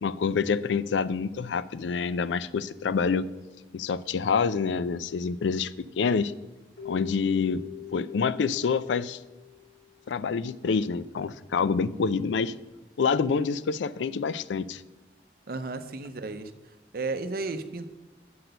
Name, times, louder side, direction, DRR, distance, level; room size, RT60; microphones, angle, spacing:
voice 1, 0.0-3.3 3.7-6.3 6.8-7.6 7.9-9.2 10.1-12.5 13.0-14.8, left 5 dB, 90° left, 16 dB, 0.4 m, -27 dB
Keyboard (musical), 6.8-10.0, left 14 dB, 75° left, 2.6 m, -43 dB
voice 2, 15.5-16.5 16.9-17.9, right 3 dB, 55° right, 10 dB, 0.6 m, -33 dB
7.7 x 6.0 x 6.6 m, 1.2 s
head